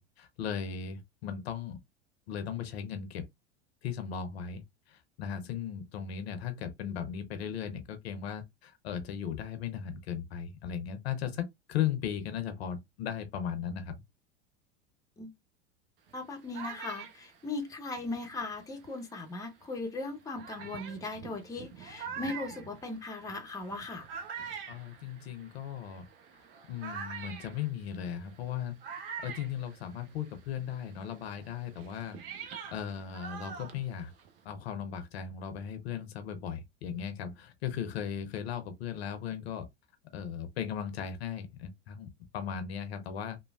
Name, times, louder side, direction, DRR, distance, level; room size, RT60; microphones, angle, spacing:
voice 1, 0.0-1.8 2.3-3.3 3.8-4.6 4.9-14.0 24.7-26.1 26.7-28.8 29.2-34.1 34.4-39.7 40.1-43.4, left 8 dB, 65° left, 0.7 m, -37 dB
voice 2, 16.1-24.1, left 3 dB, 10° left, 0.7 m, -38 dB
sound 1, 16.1-19.1 19.8-19.9 20.4-30.4 30.7-34.4, right 6 dB, 55° right, 0.7 m, -45 dB
3.0 x 2.2 x 2.2 m
figure-of-eight pair, 80°, 34 cm